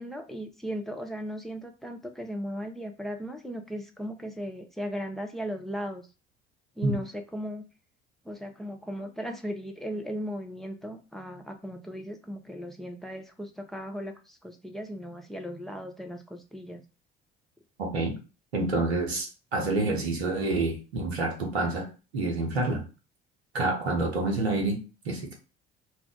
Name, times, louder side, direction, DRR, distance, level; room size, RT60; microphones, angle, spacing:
voice 1, 0.0-6.1 6.8-7.6 8.2-16.8, equal, ahead, 3 dB, 0.5 m, -37 dB
voice 2, 17.8-18.2 18.5-22.8 23.5-25.3, right 2 dB, 80° right, 1 dB, 0.8 m, -28 dB
2.4 x 2.3 x 3.5 m, 0.32 s
figure-of-eight pair, 55°, 31 cm